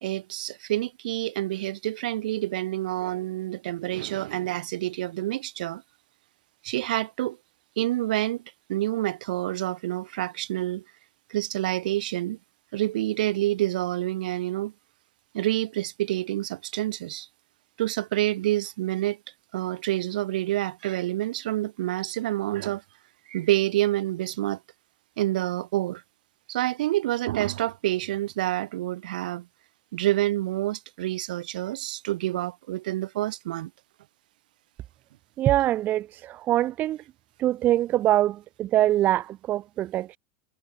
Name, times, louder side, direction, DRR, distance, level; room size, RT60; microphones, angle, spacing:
voice 1, 0.0-5.8 6.6-7.4 7.8-8.4 8.7-10.8 11.3-12.4 12.7-14.7 15.3-17.3 17.8-19.2 19.5-22.8 23.3-24.6 25.2-26.0 26.5-29.5 29.9-33.7, right 15 dB, 80° right, 0.8 m, -28 dB
voice 2, 35.4-37.0 37.4-40.2, right 13 dB, 40° right, 0.3 m, -24 dB
hypercardioid pair, 100°, 5 cm